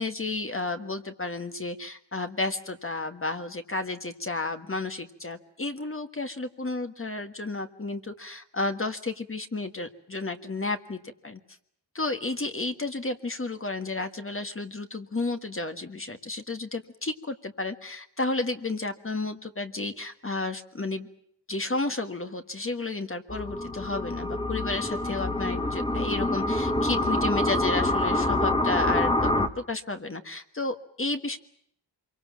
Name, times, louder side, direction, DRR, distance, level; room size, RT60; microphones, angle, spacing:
voice 1, 0.0-11.4 11.9-21.1 21.5-31.4, left 2 dB, 30° left, 7 dB, 1.6 m, -32 dB
sound 1, 23.3-29.5, left 1 dB, 10° left, 1.5 m, -26 dB
25.5 x 24.0 x 7.4 m, 0.70 s
wide cardioid pair, 105°, 42 cm